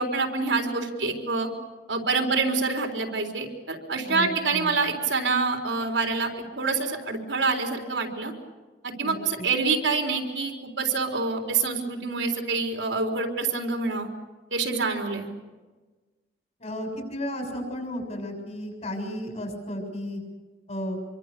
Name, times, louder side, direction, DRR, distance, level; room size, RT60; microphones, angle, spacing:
voice 1, 0.0-1.5 1.9-6.3 6.6-8.3 8.8-14.1 14.5-15.3, right 4 dB, 85° right, 2 dB, 4.0 m, -26 dB
voice 2, 4.1-4.8 9.0-9.5 16.6-20.2 20.7-21.0, equal, 40° left, 3 dB, 6.9 m, -33 dB
26.5 x 24.0 x 6.9 m, 1.3 s
head